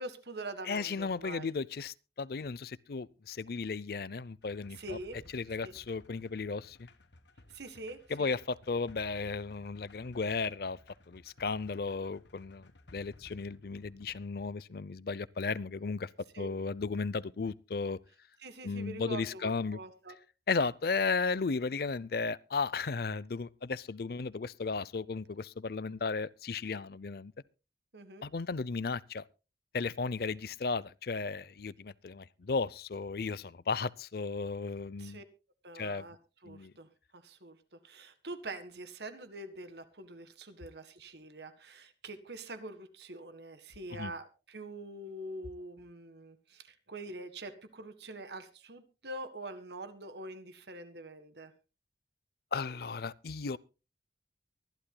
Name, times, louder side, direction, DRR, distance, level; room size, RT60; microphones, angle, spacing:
voice 1, 0.0-1.5 4.7-5.2 5.6-5.7 7.5-8.3 16.3-16.5 18.4-20.2 27.9-28.3 35.0-35.2 35.6-36.2 36.4-51.5, right 2 dB, 70° right, 1.7 m, -45 dB
voice 2, 0.7-5.0 5.3-6.9 8.1-10.8 11.1-16.1 16.4-18.0 18.6-19.8 20.5-27.3 28.2-29.2 29.7-35.2 35.7-36.1 36.5-36.7 44.0-44.1 52.5-53.6, left 4 dB, 55° left, 0.5 m, -35 dB
sound 1, 4.4-14.6, left 2 dB, 75° left, 1.4 m, -58 dB
23.5 x 11.5 x 2.2 m
head